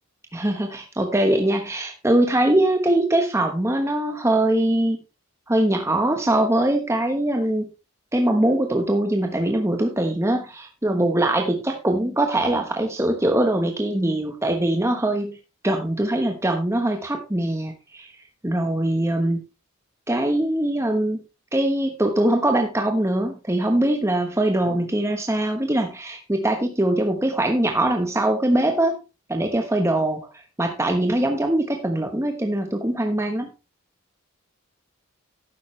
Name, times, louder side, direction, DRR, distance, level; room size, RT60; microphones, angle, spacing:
voice 1, 0.3-5.0 5.5-7.7 8.1-15.4 15.6-18.1 18.4-19.4 20.1-21.2 21.5-29.0 29.3-33.5, right 1 dB, 15° right, 4 dB, 1.1 m, -22 dB
12.0 x 9.3 x 3.2 m, 0.28 s
head